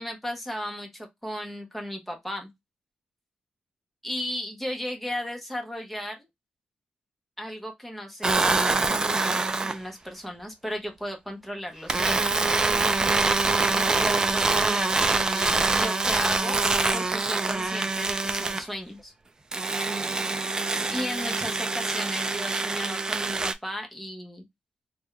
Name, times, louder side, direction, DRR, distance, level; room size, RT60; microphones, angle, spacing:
voice 1, 0.0-2.5 4.0-6.3 7.4-12.5 13.6-16.6 16.9-19.1 20.9-24.4, equal, 5° left, 0.9 m, -35 dB
sound 1, 8.2-9.8 11.9-18.6 19.5-23.5, right 3 dB, 25° right, 0.4 m, -25 dB
3.5 x 2.3 x 3.1 m
wide cardioid pair, 130°, 3 cm